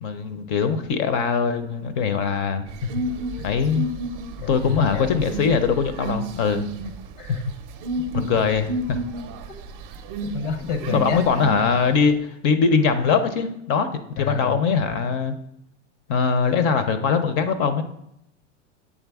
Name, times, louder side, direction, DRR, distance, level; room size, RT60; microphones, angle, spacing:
voice 1, 0.0-2.7 3.4-3.9 4.5-6.7 8.1-9.0 10.9-13.9 14.2-15.3 16.1-17.8, left 5 dB, 35° left, 10 dB, 0.4 m, -22 dB
sound 1, 2.7-12.0, right 2 dB, 40° right, 0.5 m, -32 dB
voice 2, 4.4-5.3 7.2-7.6 8.1-8.2 10.2-11.2 14.2-14.6, left 6 dB, 90° left, 7 dB, 0.8 m, -29 dB
8.2 x 3.6 x 3.4 m, 0.77 s
supercardioid pair, 150°, 36 cm